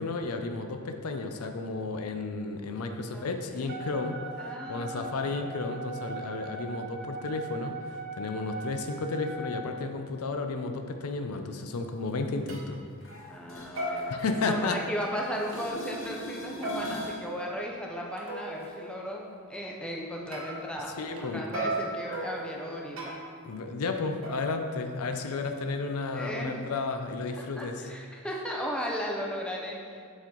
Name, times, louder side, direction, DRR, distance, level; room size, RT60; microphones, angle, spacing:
voice 1, 0.0-4.2 4.4-12.8 14.1-14.8 21.0-21.5 23.4-27.9, left 3 dB, 85° left, 6 dB, 0.5 m, -33 dB
voice 2, 3.6-4.0 4.4-5.5 13.3-14.1 14.4-23.2 26.1-26.6 27.6-30.0, equal, 5° left, -2 dB, 0.6 m, -36 dB
Wind instrument woodwind instrument, 3.7-9.7, right 3 dB, 45° right, 0.4 m, -40 dB
sound 1, 11.9-12.0 12.5-12.7 13.1-13.5 13.8-15.0 15.5-15.6 16.6-18.7 20.3-21.2 21.5-23.4 24.2-25.4, right 1 dB, 65° right, 1.1 m, -37 dB
sound 2, 13.0-15.1 15.3-17.3 23.0-23.1, equal, 60° left, 0.9 m, -42 dB
7.1 x 4.3 x 3.8 m, 2.2 s
head